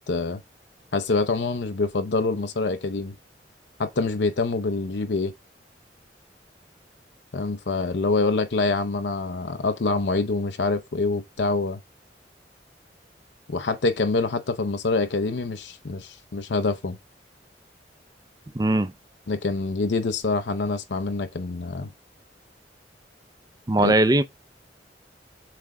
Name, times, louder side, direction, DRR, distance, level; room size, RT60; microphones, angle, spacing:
voice 1, 0.1-0.4 0.9-3.1 3.8-5.3 7.3-11.8 13.5-17.0 19.3-21.9 23.8-23.9, left 3 dB, 75° left, 0.6 m, -25 dB
voice 2, 18.5-18.9 23.7-24.2, right 1 dB, 20° right, 0.5 m, -19 dB
7.6 x 3.4 x 3.6 m
head